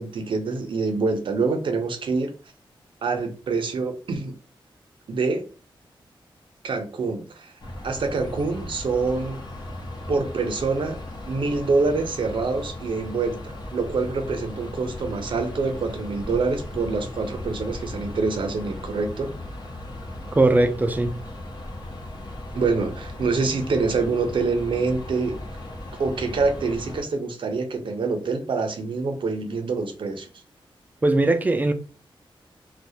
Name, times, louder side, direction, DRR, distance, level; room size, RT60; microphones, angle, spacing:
voice 1, 0.0-2.3 3.0-4.3 5.1-5.5 6.6-7.5 7.8-9.4 10.1-11.0 11.3-19.3 22.5-25.4 26.0-30.3, right 4 dB, 65° right, 0.5 m, -26 dB
sound 1, 7.6-27.0, left 1 dB, 50° left, 0.7 m, -37 dB
voice 2, 20.3-21.1 31.0-31.7, right 2 dB, 20° right, 0.3 m, -19 dB
2.3 x 2.1 x 2.7 m
wide cardioid pair, 110°, 9 cm